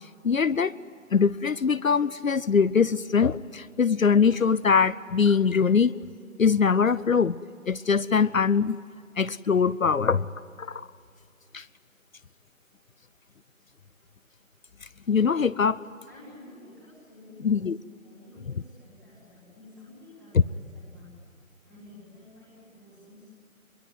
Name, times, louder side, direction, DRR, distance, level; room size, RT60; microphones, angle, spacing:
voice 1, 0.2-0.8 1.1-5.9 6.4-7.4 7.7-8.8 9.2-10.3 10.6-10.9 11.5-11.7 15.1-15.8 17.4-17.8 20.3-20.4, left 6 dB, 70° left, 16 dB, 0.7 m, -22 dB
voice 2, 16.0-17.7 18.0-21.1 21.6-23.3, left 2 dB, ahead, -10 dB, 2.1 m, -51 dB
27.0 x 22.5 x 9.5 m, 2.3 s
figure-of-eight pair, 175°, 42 cm